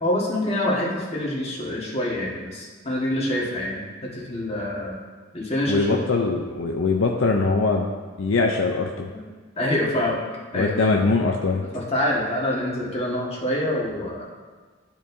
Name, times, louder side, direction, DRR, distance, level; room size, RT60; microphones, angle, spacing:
voice 1, 0.0-4.9 5.3-6.0 9.1-9.2 9.6-10.2 10.5-10.7 11.7-14.5, left 1 dB, 35° left, -5 dB, 1.6 m, -26 dB
voice 2, 5.7-7.9 8.2-9.1 10.5-11.6, left 3 dB, 70° left, 1 dB, 0.5 m, -22 dB
12.5 x 4.6 x 2.7 m, 1.4 s
head